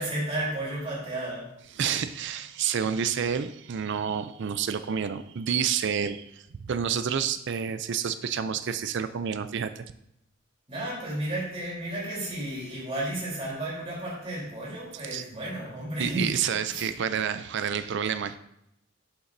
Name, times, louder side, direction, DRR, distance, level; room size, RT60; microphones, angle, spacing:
voice 1, 0.0-1.5 10.7-16.3 16.7-16.9, right 1 dB, 30° right, -5 dB, 3.5 m, -33 dB
voice 2, 1.7-9.8 15.1-15.2 16.0-18.4, right 7 dB, 60° right, 12 dB, 0.4 m, -29 dB
11.0 x 6.9 x 2.7 m, 0.79 s
head